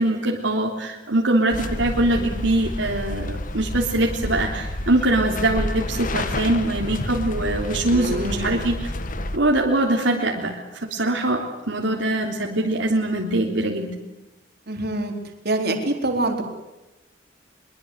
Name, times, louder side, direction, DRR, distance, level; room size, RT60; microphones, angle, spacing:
voice 1, 0.0-8.9 9.3-13.9, right 1 dB, 75° right, -1 dB, 3.5 m, -23 dB
sound 1, 1.5-9.4, left 1 dB, 45° left, 1.8 m, -29 dB
voice 2, 7.9-8.6 14.7-15.1 15.4-16.4, right 2 dB, 55° right, 3 dB, 4.2 m, -25 dB
23.5 x 23.0 x 8.2 m, 1.0 s
head